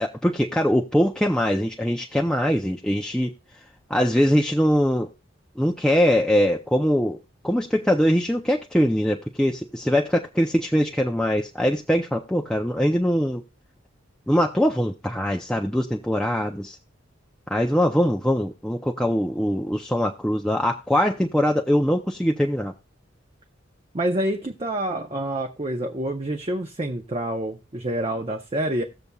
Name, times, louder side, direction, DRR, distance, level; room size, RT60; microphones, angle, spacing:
voice 1, 0.0-3.3 3.9-5.1 5.6-7.2 7.4-13.4 14.3-16.8 17.5-22.7, equal, 5° left, 0.5 m, -22 dB
voice 2, 23.9-28.8, right 1 dB, 30° right, 0.8 m, -27 dB
17.5 x 6.8 x 2.3 m
head